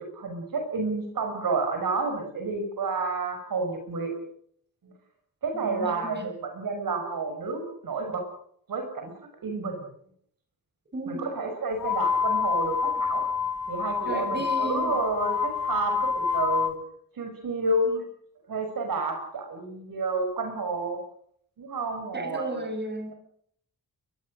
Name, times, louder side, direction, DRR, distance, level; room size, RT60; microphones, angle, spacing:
voice 1, 0.0-4.1 4.8-4.9 5.4-8.2 8.7-9.1 9.4-9.9 11.1-13.2 13.7-16.8 17.2-17.9 18.5-21.0 21.6-22.6, right 3 dB, 65° right, 4 dB, 6.0 m, -30 dB
voice 2, 5.5-6.3 10.9-11.3 14.1-15.0 17.9-18.0 22.1-23.1, right 1 dB, 30° right, 6 dB, 7.3 m, -34 dB
sound 1, 11.8-16.7, left 6 dB, 70° left, 3.3 m, -27 dB
23.5 x 21.5 x 6.6 m, 0.67 s
cardioid pair, 105°, 36 cm